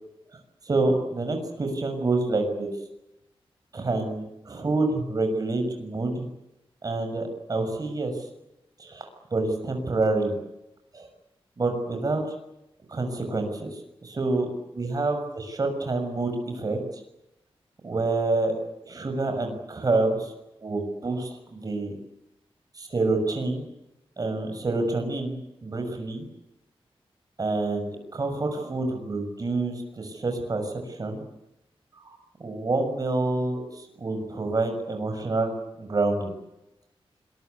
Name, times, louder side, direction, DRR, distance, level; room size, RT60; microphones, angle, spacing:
voice 1, 0.6-2.7 3.7-6.3 6.8-8.2 8.8-10.4 10.9-11.1 11.6-12.2 12.9-17.0 17.8-18.5 18.8-20.3 20.6-21.9 22.7-23.7 24.2-26.2 27.4-31.2 31.9-35.5 35.8-36.3, right 2 dB, 40° right, 5 dB, 6.4 m, -27 dB
26.5 x 22.0 x 8.3 m, 0.89 s
wide cardioid pair, 165°, 10 cm